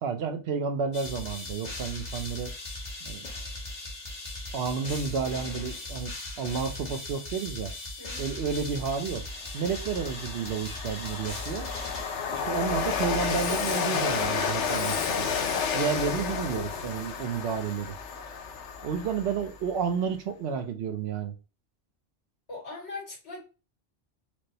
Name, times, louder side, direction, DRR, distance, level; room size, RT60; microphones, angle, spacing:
voice 1, 0.0-2.5 3.0-3.3 4.5-7.7 8.2-9.2 9.5-11.7 12.3-15.3 15.7-17.9 18.8-21.3, right 6 dB, 70° right, 0.8 m, -31 dB
sound 1, 0.9-12.8, left 2 dB, 40° left, 1.0 m, -38 dB
voice 2, 8.0-8.7 22.5-23.4, left 3 dB, 65° left, 2.4 m, -41 dB
Train, 8.8-8.9 9.3-19.7, left 6 dB, 80° left, 0.9 m, -31 dB
4.6 x 2.0 x 2.7 m
omnidirectional pair, 1.2 m